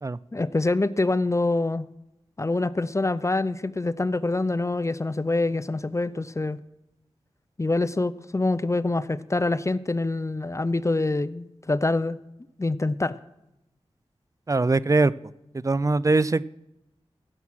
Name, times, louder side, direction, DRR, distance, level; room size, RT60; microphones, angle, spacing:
voice 1, 0.3-1.9 2.4-6.6 7.6-12.2 12.6-13.1, left 2 dB, 25° left, 17 dB, 0.5 m, -25 dB
voice 2, 14.5-15.1 15.6-16.4, right 3 dB, 30° right, 19 dB, 0.4 m, -21 dB
15.5 x 7.1 x 6.2 m, 0.90 s
cardioid pair, 45°, 11 cm